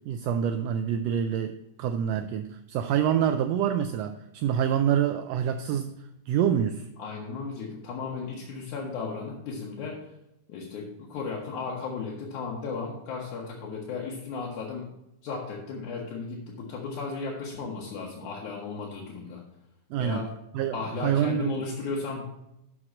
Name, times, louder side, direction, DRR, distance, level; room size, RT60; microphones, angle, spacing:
voice 1, 0.1-6.9 19.9-20.3 20.5-21.6, right 9 dB, 85° right, 8 dB, 1.4 m, -27 dB
voice 2, 7.0-10.1 10.5-14.9 15.2-19.4 20.0-20.3 20.7-22.2, left 4 dB, 80° left, -3 dB, 2.6 m, -35 dB
6.4 x 6.1 x 7.1 m, 0.86 s
omnidirectional pair, 3.4 m